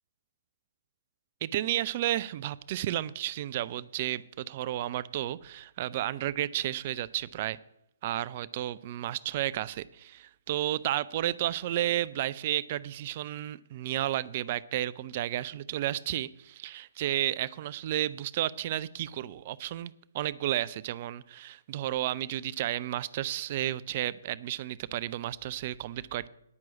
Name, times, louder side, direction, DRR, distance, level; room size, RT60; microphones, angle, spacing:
voice 1, 1.4-7.6 8.0-26.3, right 13 dB, 35° right, 0.3 m, -32 dB
9.6 x 6.0 x 8.5 m
figure-of-eight pair, 125°, 0 cm